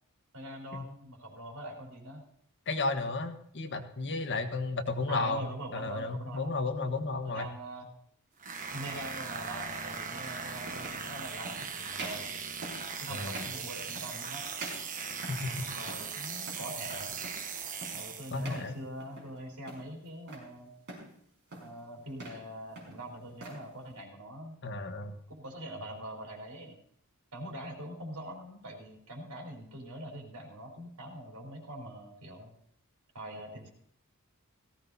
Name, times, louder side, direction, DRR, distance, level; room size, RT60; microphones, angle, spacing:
voice 1, 0.3-2.2 5.1-6.5 7.2-7.9 8.7-12.3 13.0-14.5 15.5-17.2 17.9-20.7 21.5-24.6 25.3-26.8 27.3-32.5 33.1-33.7, right 1 dB, 85° right, -1 dB, 4.3 m, -43 dB
voice 2, 2.7-5.5 5.7-7.5 13.1-13.5 15.3-15.5 18.3-18.8 24.6-25.2, left 3 dB, 55° left, 6 dB, 1.3 m, -33 dB
sound 1, 8.4-18.6, right 5 dB, 35° right, 1.1 m, -39 dB
sound 2, 8.4-8.6 9.9-10.0 10.6-11.0 11.4-11.6 11.9-12.3 12.6-12.9 13.3-13.6 13.9-14.3 14.6-15.5 15.8-16.1 16.4-16.7 17.2-17.5 17.8-18.1 18.4-18.7 19.0-19.4 19.7-20.5 20.9-21.1 21.5-21.8 22.1-22.4 22.7-23.6, right 2 dB, 50° right, 5.5 m, -44 dB
18.0 x 16.0 x 2.8 m, 0.67 s
head